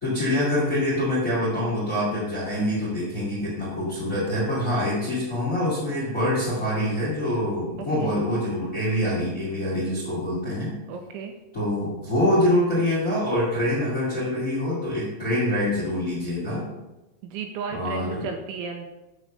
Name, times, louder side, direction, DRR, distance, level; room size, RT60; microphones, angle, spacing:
voice 1, 0.0-10.7 11.5-16.7 17.7-18.3, left 1 dB, 30° left, -7 dB, 1.4 m, -25 dB
voice 2, 7.8-8.2 10.9-11.3 17.2-18.9, right 5 dB, 80° right, 4 dB, 2.9 m, -34 dB
9.7 x 4.0 x 6.5 m, 1.0 s
omnidirectional pair, 5.7 m